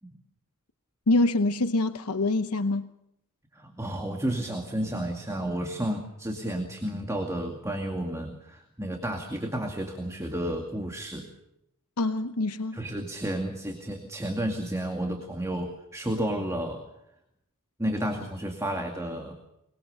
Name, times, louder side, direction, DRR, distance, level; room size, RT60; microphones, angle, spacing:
voice 1, 1.1-2.9 12.0-12.8, left 2 dB, 80° left, 0.9 m, -25 dB
voice 2, 3.5-11.3 12.7-16.8 17.8-19.4, right 1 dB, 15° right, 2.2 m, -31 dB
23.0 x 22.5 x 6.7 m
head